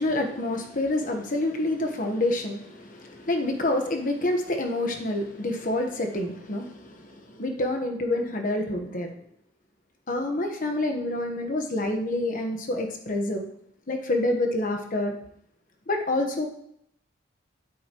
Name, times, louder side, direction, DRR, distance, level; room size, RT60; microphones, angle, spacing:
voice 1, 0.0-9.1 10.1-13.5 13.9-15.1 15.9-16.5, left 1 dB, 45° left, 3 dB, 1.2 m, -27 dB
8.7 x 8.7 x 3.0 m, 0.71 s
head